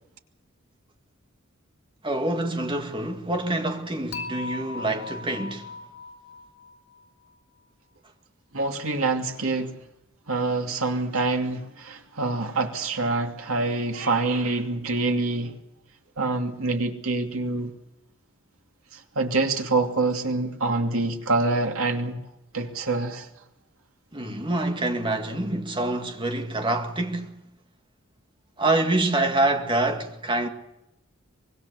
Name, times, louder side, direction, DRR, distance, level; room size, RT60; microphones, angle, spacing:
voice 1, 2.0-5.8 24.1-27.4 28.6-30.5, right 2 dB, 25° right, 2.1 m, -26 dB
Dishes pots and pans / Chink clink, 4.1-7.3, left 3 dB, 90° left, 3.6 m, -38 dB
voice 2, 8.5-9.8 10.3-15.6 16.2-17.7 18.9-22.2 22.5-23.3, right 3 dB, 85° right, 2.7 m, -26 dB
24.5 x 21.5 x 7.0 m
head